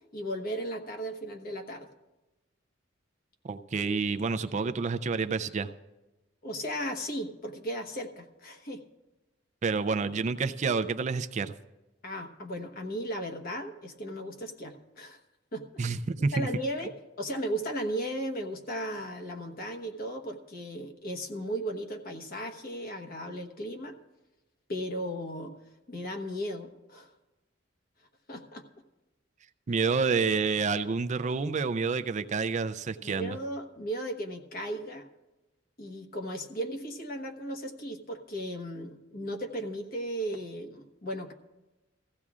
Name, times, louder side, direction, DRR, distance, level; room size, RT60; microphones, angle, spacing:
voice 1, 0.1-1.9 6.4-8.8 12.0-15.2 15.5-16.0 16.3-16.9 17.2-24.0 24.7-25.5 25.9-27.1 28.3-28.6 33.0-35.1 35.8-41.3, equal, 50° left, 4 dB, 1.2 m, -36 dB
voice 2, 3.4-5.7 9.6-11.5 15.8-16.5 29.7-33.4, right 4 dB, 40° right, 10 dB, 0.4 m, -29 dB
19.5 x 15.0 x 2.4 m, 1.0 s
head